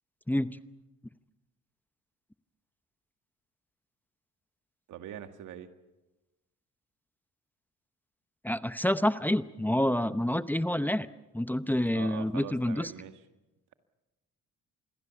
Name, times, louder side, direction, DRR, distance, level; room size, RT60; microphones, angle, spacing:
voice 1, 4.9-5.7 11.8-13.2, right 10 dB, 85° right, 8 dB, 1.8 m, -43 dB
voice 2, 8.4-11.1 11.3-12.9, left 1 dB, 5° left, 13 dB, 0.8 m, -28 dB
27.5 x 21.5 x 7.1 m, 1.0 s
cardioid pair, 90°, 30 cm